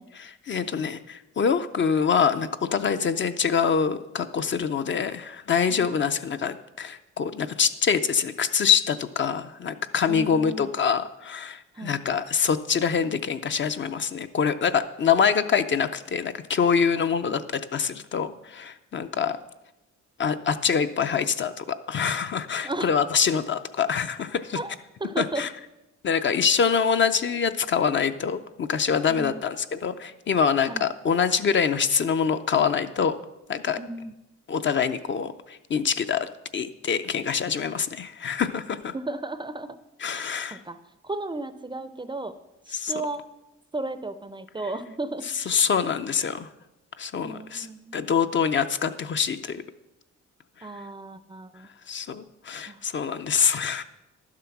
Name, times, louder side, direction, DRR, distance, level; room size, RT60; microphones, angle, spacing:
voice 1, 0.1-19.4 20.2-24.6 25.2-25.5 26.0-33.2 33.5-33.8 34.5-38.9 40.0-40.6 42.7-42.9 45.3-46.5 47.0-47.7 47.9-49.6 50.6-50.7 51.9-53.8, left 6 dB, 40° left, 10 dB, 0.5 m, -25 dB
voice 2, 10.1-10.7 11.7-12.0 17.3-17.4 22.6-23.0 24.5-24.7 25.0-25.4 29.1-29.4 30.7-30.9 33.8-34.1 38.9-39.8 40.1-40.8 41.0-42.3 42.9-43.2 43.7-45.3 47.2-48.0 50.6-51.7 52.7-52.8, right 2 dB, 15° right, 11 dB, 0.4 m, -34 dB
11.5 x 7.5 x 5.8 m, 0.96 s
cardioid pair, 135°, 29 cm